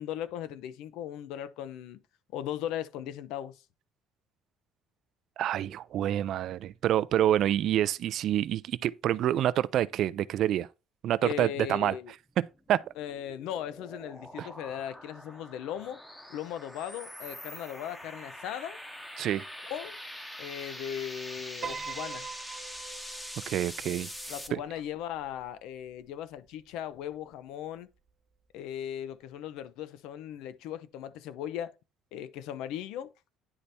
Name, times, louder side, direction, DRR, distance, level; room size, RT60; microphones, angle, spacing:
voice 1, 0.0-2.0 2.3-3.6 11.2-12.1 13.0-16.0 16.3-18.8 19.6-20.0 20.4-22.3 24.3-27.9 28.5-31.7 32.1-33.1, left 10 dB, 75° left, 0.6 m, -38 dB
voice 2, 5.4-10.7 11.0-12.0 12.4-12.8 14.4-14.5 19.2-19.4 23.5-24.1 24.5-24.6, right 12 dB, 50° right, 0.3 m, -27 dB
sound 1, 12.5-24.5, equal, 5° left, 0.8 m, -44 dB
Piano, 21.6-26.0, right 6 dB, 30° right, 0.9 m, -44 dB
9.8 x 3.4 x 4.1 m
cardioid pair, 160°, 0 cm